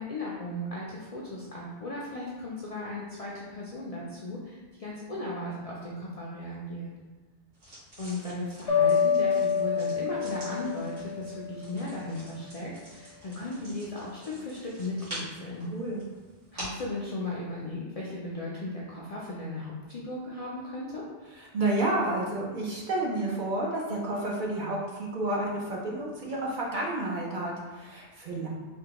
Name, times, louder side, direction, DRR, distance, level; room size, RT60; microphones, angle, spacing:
voice 1, 0.0-6.9 8.0-15.7 16.5-21.0, left 2 dB, 55° left, -5 dB, 0.4 m, -36 dB
sound 1, 7.5-16.9, right 1 dB, 80° right, 1.7 m, -46 dB
sound 2, 8.7-11.8, left 6 dB, 80° left, 0.9 m, -27 dB
voice 2, 15.7-16.0 21.3-28.5, right 2 dB, 55° right, -3 dB, 0.6 m, -30 dB
3.4 x 2.2 x 2.9 m, 1.3 s
omnidirectional pair, 1.1 m